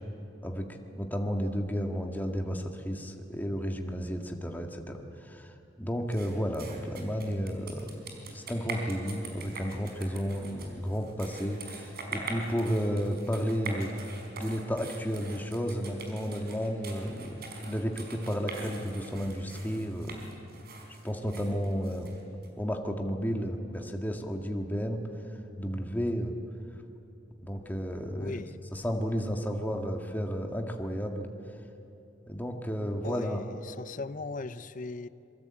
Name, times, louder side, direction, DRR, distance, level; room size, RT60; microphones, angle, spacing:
voice 1, 1.0-8.0 8.3-13.9 14.3-20.3 21.0-22.1 22.6-25.0 25.6-26.3 27.4-28.4 28.7-31.3 32.3-33.4, equal, 10° left, 3 dB, 1.9 m, -32 dB
sound 1, 6.1-22.5, right 3 dB, 55° right, 4.7 m, -43 dB
voice 2, 28.1-28.6 33.0-35.1, left 3 dB, 45° left, 14 dB, 0.7 m, -38 dB
25.5 x 23.5 x 8.8 m, 2.9 s
head